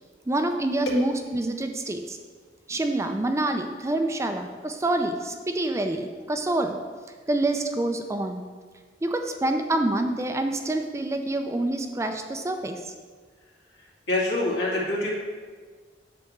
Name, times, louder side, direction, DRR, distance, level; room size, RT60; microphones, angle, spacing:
voice 1, 0.3-2.2 2.7-6.8 7.3-8.4 9.0-12.9, right 2 dB, 15° right, 5 dB, 0.4 m, -27 dB
voice 2, 14.1-15.1, left 2 dB, 75° left, -6 dB, 2.3 m, -25 dB
8.3 x 3.4 x 6.6 m, 1.5 s
head